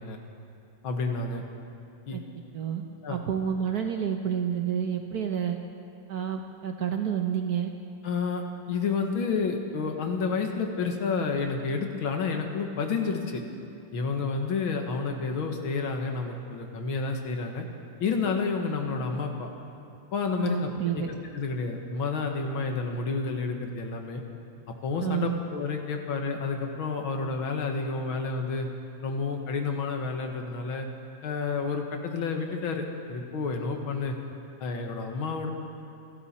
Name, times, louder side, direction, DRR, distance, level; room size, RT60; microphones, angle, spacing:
voice 1, 0.8-1.4 2.1-2.2 3.0-3.2 8.0-13.4 13.9-17.7 18.0-19.5 20.1-21.0 21.3-24.2 24.8-28.7 29.0-30.9 31.2-34.2 34.6-35.5, left 4 dB, 75° left, 3 dB, 2.2 m, -30 dB
voice 2, 3.1-5.6 6.1-7.7 20.4-21.1 25.0-25.4, right 8 dB, 60° right, 4 dB, 1.2 m, -29 dB
28.5 x 11.0 x 4.3 m, 2.8 s
omnidirectional pair, 2.3 m